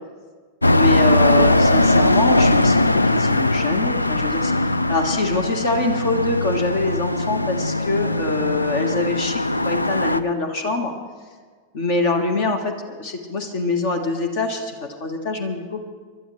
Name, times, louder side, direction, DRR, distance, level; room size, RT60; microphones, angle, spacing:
sound 1, 0.6-10.2, left 1 dB, 85° left, 0.4 m, -19 dB
voice 1, 0.7-10.9 11.7-15.8, left 3 dB, 50° left, 5 dB, 1.5 m, -24 dB
30.0 x 12.5 x 3.3 m, 1.6 s
figure-of-eight pair, 90°, 0 cm